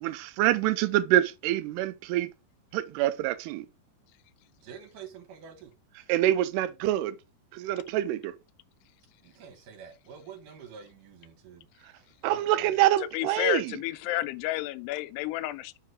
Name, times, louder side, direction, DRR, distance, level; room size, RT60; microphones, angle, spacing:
voice 1, 0.0-2.3 2.7-3.7 6.1-7.2 7.5-8.3 12.2-13.7, right 14 dB, 85° right, 2.6 m, -26 dB
voice 2, 4.6-5.7 9.2-11.7 12.2-12.8, right 7 dB, 60° right, 2.8 m, -47 dB
voice 3, 13.1-15.8, left 15 dB, 85° left, 2.7 m, -31 dB
7.5 x 3.7 x 4.7 m
omnidirectional pair, 4.7 m